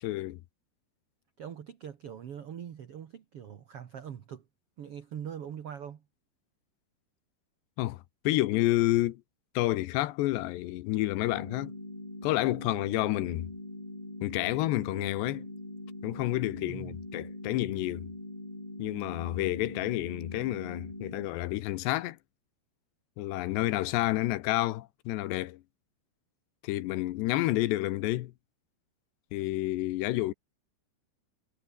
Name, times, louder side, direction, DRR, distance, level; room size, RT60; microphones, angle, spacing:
voice 1, 0.0-0.4 7.8-9.2 9.6-11.8 12.2-13.5 14.2-15.5 16.0-18.1 18.8-22.2 23.2-25.6 26.6-28.3 29.3-30.3, left 17 dB, 80° left, 3.2 m, -29 dB
voice 2, 1.4-4.4 4.8-6.0 16.6-17.0, right 8 dB, 75° right, 1.3 m, -42 dB
sound 1, 11.2-21.3, left 1 dB, 10° left, 3.1 m, -42 dB
omnidirectional pair, 4.9 m